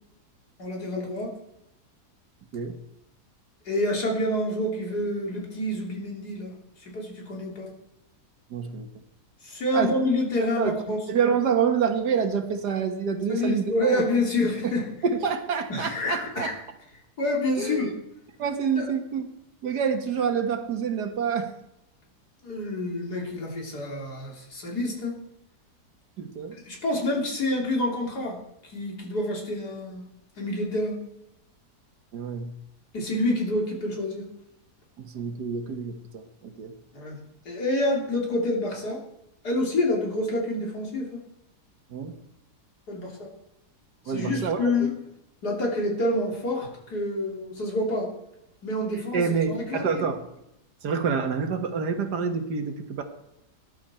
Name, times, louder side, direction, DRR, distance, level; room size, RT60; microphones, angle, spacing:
voice 1, 0.6-1.3 3.7-6.6 6.8-7.7 9.4-11.0 13.3-14.9 15.7-16.5 17.2-17.9 18.8-18.9 22.4-25.1 26.7-30.1 30.4-31.0 32.9-34.3 36.9-37.2 37.5-39.0 39.4-41.1 42.9-43.3 44.1-44.9 45.4-48.1 48.6-49.2 49.5-50.0, left 1 dB, 75° left, -1 dB, 3.7 m, -27 dB
voice 2, 8.5-8.9 9.7-10.0 10.6-10.8 11.1-14.0 14.6-14.7 15.0-16.5 17.6-17.9 18.4-19.3 19.6-21.5 26.2-26.6 32.1-32.6 35.0-36.7 41.9-42.1 44.1-44.9 48.9-50.2 50.8-53.0, right 6 dB, 80° right, 7 dB, 2.0 m, -27 dB
19.5 x 11.5 x 4.4 m, 0.83 s
omnidirectional pair, 1.7 m